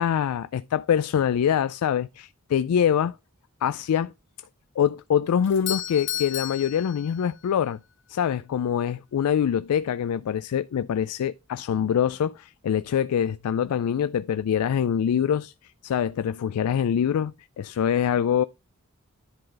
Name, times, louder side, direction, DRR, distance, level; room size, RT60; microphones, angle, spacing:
voice 1, 0.0-3.2 3.6-4.1 4.8-7.8 8.1-15.5 15.8-18.4, left 8 dB, 90° left, 0.3 m, -24 dB
Doorbell, 5.4-7.6, left 12 dB, 60° left, 1.0 m, -33 dB
10.5 x 3.9 x 5.1 m
head